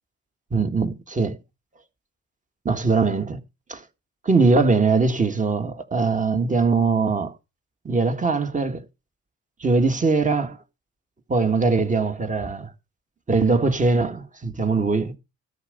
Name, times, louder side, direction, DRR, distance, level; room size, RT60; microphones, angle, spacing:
voice 1, 0.5-1.4 2.7-3.4 3.7-3.8 4.2-7.3 7.9-8.8 9.6-10.6 11.3-12.7 13.3-15.2, right 4 dB, 25° right, 1.7 m, -21 dB
13.0 x 5.1 x 6.6 m
cardioid pair, 90°, 30 cm